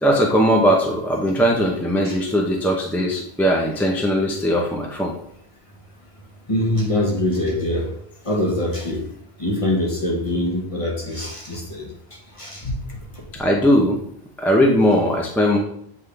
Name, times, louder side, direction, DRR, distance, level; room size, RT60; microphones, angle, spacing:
voice 1, 0.0-5.1 13.4-14.0 14.4-15.6, equal, ahead, -1 dB, 0.6 m, -19 dB
voice 2, 6.5-7.9 8.2-9.0 9.4-11.9 12.4-13.3, left 1 dB, 30° left, -2 dB, 1.3 m, -24 dB
7.8 x 3.7 x 3.4 m, 0.69 s
omnidirectional pair, 1.1 m